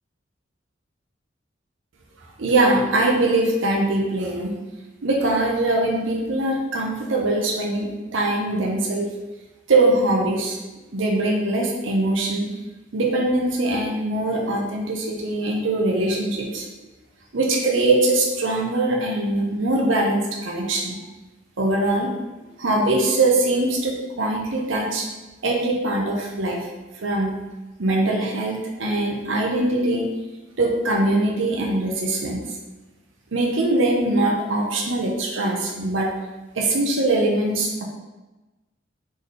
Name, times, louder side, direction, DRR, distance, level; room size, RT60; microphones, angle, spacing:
voice 1, 2.4-4.5 5.0-9.1 9.7-10.6 10.9-12.5 12.9-16.7 17.3-21.0 21.6-22.1 22.6-25.1 25.4-26.7 27.0-27.3 27.8-30.0 30.6-32.4 33.3-36.1 36.5-37.8, right 2 dB, 85° right, -1 dB, 0.8 m, -22 dB
4.0 x 3.3 x 3.9 m, 1.1 s
head